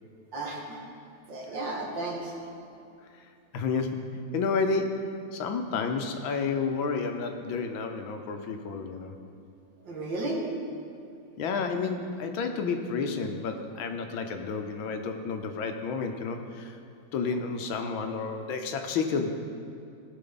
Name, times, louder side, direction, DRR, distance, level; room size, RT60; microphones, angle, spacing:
voice 1, 0.0-0.8 1.3-2.7 9.8-10.4, right 2 dB, 70° right, -2 dB, 2.3 m, -34 dB
voice 2, 3.1-9.1 11.4-16.8 17.1-19.3, left 4 dB, 80° left, 5 dB, 1.6 m, -31 dB
18.0 x 6.1 x 3.9 m, 2.6 s
omnidirectional pair, 2.1 m